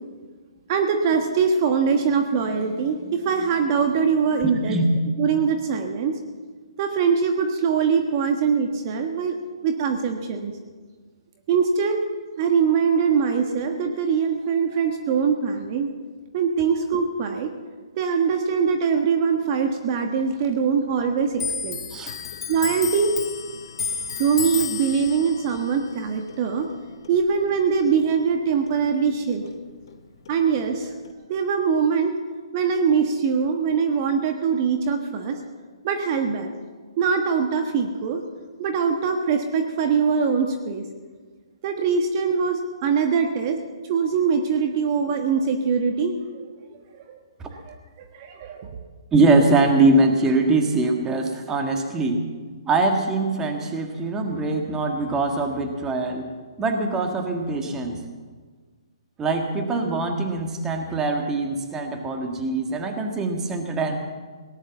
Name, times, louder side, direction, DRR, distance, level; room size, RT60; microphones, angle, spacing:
voice 1, 0.7-4.7 5.2-6.1 6.8-9.3 9.6-10.5 11.5-12.0 12.4-15.9 16.3-17.5 18.0-21.8 22.5-23.1 24.2-26.7 27.1-29.4 30.3-30.9 31.3-32.1 32.5-35.4 35.8-36.5 37.0-38.2 38.6-40.8 41.6-43.6 43.9-46.2 47.1-47.2 47.7-48.7, right 6 dB, 40° right, 5 dB, 1.4 m, -22 dB
Clock, 21.3-28.4 28.7-30.0 30.3-31.1, left 6 dB, 55° left, 1.3 m, -33 dB
voice 2, 49.1-52.2 52.6-56.3 56.6-58.0 59.2-64.0, right 2 dB, 15° right, 3 dB, 1.7 m, -22 dB
18.0 x 10.5 x 7.3 m, 1.5 s
hypercardioid pair, 145°, 3 cm